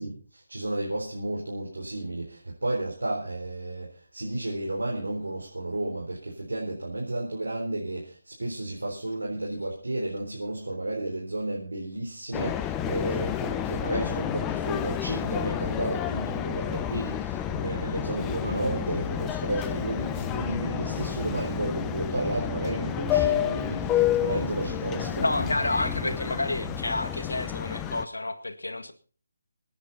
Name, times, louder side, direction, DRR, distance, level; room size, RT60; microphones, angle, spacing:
voice 1, 0.0-25.5 26.0-26.7, right 2 dB, 80° right, -2 dB, 4.0 m, -32 dB
sound 1, 12.3-28.0, left 11 dB, 15° left, 0.7 m, -30 dB
Organ, 19.7-26.2, right 3 dB, 55° right, 1.4 m, -43 dB
voice 2, 25.2-28.9, left 2 dB, 80° left, 9 dB, 1.8 m, -29 dB
23.0 x 9.8 x 4.1 m, 0.38 s
figure-of-eight pair, 155°, 0 cm